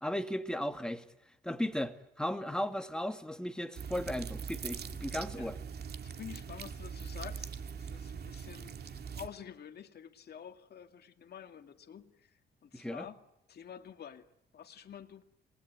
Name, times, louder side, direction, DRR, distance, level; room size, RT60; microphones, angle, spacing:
voice 1, 0.0-1.0 1.4-5.6 12.7-13.1, left 1 dB, 5° left, 2.3 m, -36 dB
sound 1, 3.8-9.3, right 6 dB, 55° right, 2.3 m, -42 dB
voice 2, 6.0-13.2 13.5-14.3 14.5-15.2, left 8 dB, 55° left, 2.3 m, -49 dB
28.0 x 20.0 x 9.6 m
cardioid pair, 90°, 20 cm